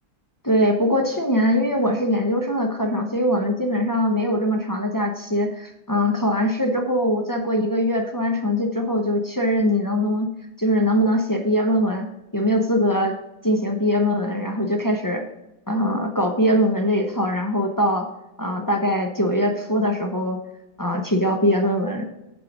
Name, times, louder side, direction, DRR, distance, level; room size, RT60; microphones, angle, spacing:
voice 1, 0.4-10.3 10.6-12.1 12.3-13.2 13.4-15.2 15.7-18.1 18.4-20.4 20.8-22.0, equal, 20° left, 2 dB, 0.5 m, -22 dB
7.1 x 5.7 x 6.0 m, 0.93 s
omnidirectional pair, 1.7 m